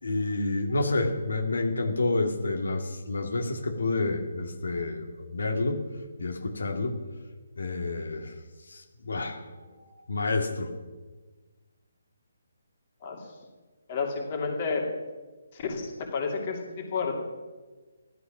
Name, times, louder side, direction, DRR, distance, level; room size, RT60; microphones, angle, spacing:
voice 1, 0.0-5.8 6.2-7.0 7.6-8.3 8.7-10.7, left 2 dB, 90° left, 3 dB, 2.6 m, -29 dB
voice 2, 13.9-14.9 15.5-17.2, left 4 dB, 30° left, 2 dB, 2.5 m, -31 dB
15.5 x 12.5 x 6.1 m, 1.3 s
hypercardioid pair, 170°, 0 cm